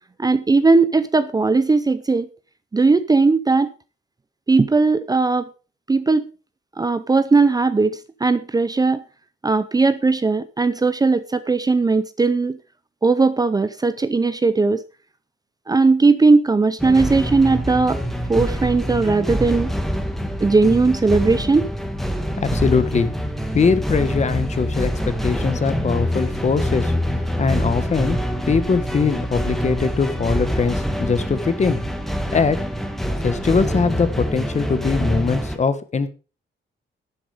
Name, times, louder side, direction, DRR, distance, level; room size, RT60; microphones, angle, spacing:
voice 1, 0.2-2.3 2.7-3.7 4.5-5.5 5.9-6.3 6.8-9.0 9.4-12.6 13.0-14.8 15.7-18.0 18.3-19.7 20.4-21.7, right 3 dB, 20° right, 0.6 m, -18 dB
sound 1, 16.8-35.6, equal, ahead, 1.7 m, -25 dB
voice 2, 22.4-23.1 23.5-26.9 27.4-28.2 28.5-31.8 32.3-32.6 33.2-36.1, left 5 dB, 35° left, 1.3 m, -21 dB
11.0 x 10.0 x 4.9 m
wide cardioid pair, 145°, 20 cm